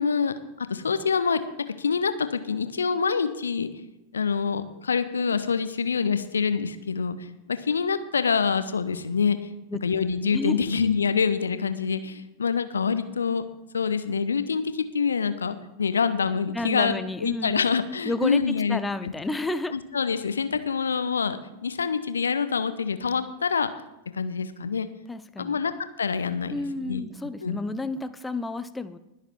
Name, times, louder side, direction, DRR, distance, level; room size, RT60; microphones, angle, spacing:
voice 1, 0.0-1.4 1.8-3.7 4.1-7.2 7.5-9.4 9.8-13.4 13.7-19.1 19.7-23.7 24.1-24.9 25.4-25.7 26.0-26.6 26.9-27.0 27.4-27.6, left 6 dB, 70° left, 12 dB, 0.8 m, -26 dB
voice 2, 10.3-10.7 16.5-17.6 18.1-19.7 25.1-25.6 26.5-29.0, left 2 dB, 10° left, 11 dB, 0.7 m, -31 dB
20.5 x 7.1 x 4.6 m, 0.92 s
figure-of-eight pair, 90°, 0 cm